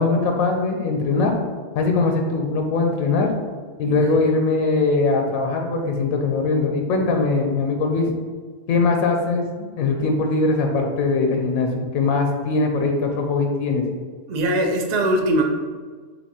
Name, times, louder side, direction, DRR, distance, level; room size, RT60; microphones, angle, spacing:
voice 1, 0.0-1.3 1.8-3.3 3.8-8.1 8.7-13.8, left 3 dB, 85° left, 3 dB, 1.1 m, -21 dB
voice 2, 14.3-15.4, right 1 dB, 60° right, 3 dB, 0.4 m, -21 dB
6.5 x 2.9 x 2.8 m, 1.5 s
omnidirectional pair, 1.4 m